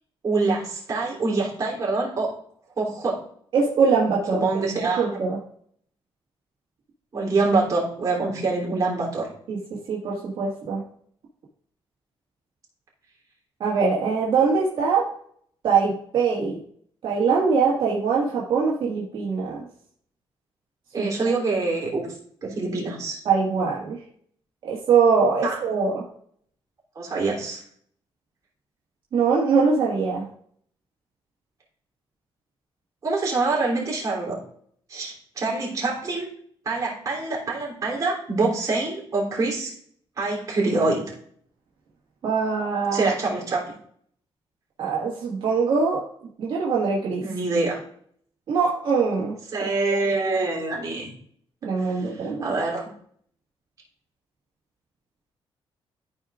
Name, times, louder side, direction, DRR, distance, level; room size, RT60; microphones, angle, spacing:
voice 1, 0.2-2.3 2.8-3.2 4.3-5.1 7.1-9.3 20.9-22.0 22.4-23.2 25.4-25.6 26.9-27.6 33.0-34.4 34.9-36.3 36.6-39.7 40.2-41.0 42.9-43.6 47.2-47.8 49.5-51.1 51.8-52.9, right 3 dB, 40° right, -4 dB, 3.1 m, -25 dB
voice 2, 3.5-4.5 4.8-5.4 9.5-10.8 13.6-15.1 15.6-16.6 17.0-19.6 21.0-21.1 23.3-24.0 24.6-26.0 29.1-30.3 42.2-43.1 44.8-46.0 46.4-47.2 48.5-49.7 51.6-52.6, right 5 dB, 60° right, -5 dB, 1.9 m, -22 dB
13.5 x 5.0 x 2.5 m, 0.62 s
cardioid pair, 145°, 9 cm